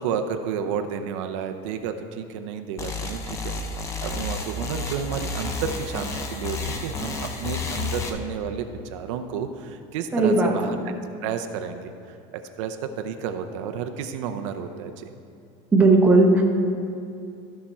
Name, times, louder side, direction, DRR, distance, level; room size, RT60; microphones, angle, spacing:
voice 1, 0.0-3.5 4.0-10.9 11.2-15.1, right 7 dB, 70° right, 7 dB, 0.6 m, -31 dB
sound 1, 2.8-8.1, left 3 dB, 20° left, 0.5 m, -31 dB
voice 2, 10.1-10.8 15.7-16.4, right 2 dB, 10° right, 0 dB, 0.8 m, -17 dB
13.0 x 5.9 x 4.3 m, 2.6 s
cardioid pair, 180°, 16 cm